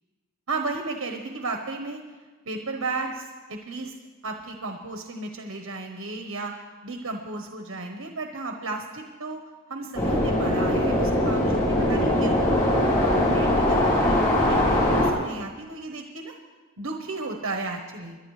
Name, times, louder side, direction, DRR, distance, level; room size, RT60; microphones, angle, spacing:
voice 1, 0.5-2.0 2.4-3.9 4.2-6.5 6.8-9.4 9.7-12.4 12.9-16.3 16.8-18.2, right 3 dB, 85° right, 3 dB, 1.1 m, -33 dB
sound 1, 9.9-15.1, left 1 dB, 40° left, 2.8 m, -21 dB
22.5 x 11.0 x 3.3 m, 1.4 s
head